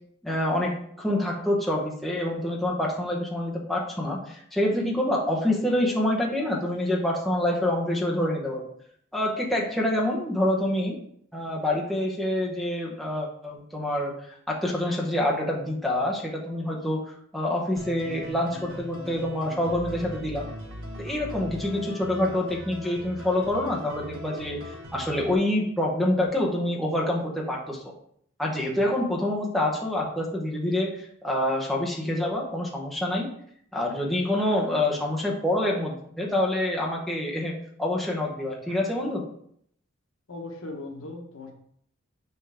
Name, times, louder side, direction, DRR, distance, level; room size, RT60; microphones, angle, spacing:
voice 1, 0.2-0.7 1.0-8.7 9.1-11.0 11.3-14.1 14.5-20.5 21.0-27.8 28.4-33.3 33.7-39.2, left 1 dB, ahead, -3 dB, 0.9 m, -26 dB
sound 1, 17.8-25.3, equal, 70° right, 1.1 m, -40 dB
voice 2, 40.3-41.5, left 2 dB, 80° left, 3 dB, 1.0 m, -38 dB
5.7 x 5.1 x 3.4 m, 0.66 s
head